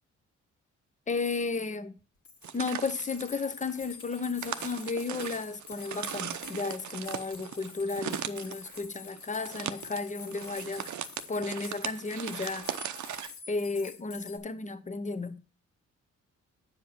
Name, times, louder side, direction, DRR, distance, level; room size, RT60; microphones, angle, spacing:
voice 1, 1.1-1.9 2.5-12.8 13.5-15.4, left 4 dB, 25° left, 0.8 m, -33 dB
sound 1, 2.0-2.1 2.2-14.4, left 6 dB, 65° left, 2.0 m, -48 dB
sound 2, 2.4-13.3, right 10 dB, 65° right, 0.7 m, -39 dB
8.6 x 5.2 x 5.7 m
cardioid pair, 80°, 31 cm